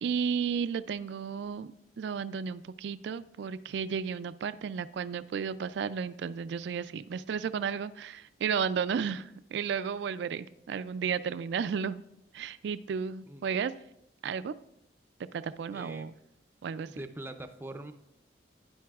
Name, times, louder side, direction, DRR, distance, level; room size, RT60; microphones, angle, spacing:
voice 1, 0.0-12.0 12.3-13.7 14.2-14.5 15.2-16.1 16.6-16.9, right 6 dB, 70° right, 14 dB, 0.3 m, -33 dB
voice 2, 15.7-16.1 16.8-17.9, right 1 dB, 10° right, 7 dB, 0.5 m, -43 dB
12.5 x 9.3 x 2.3 m, 0.82 s
head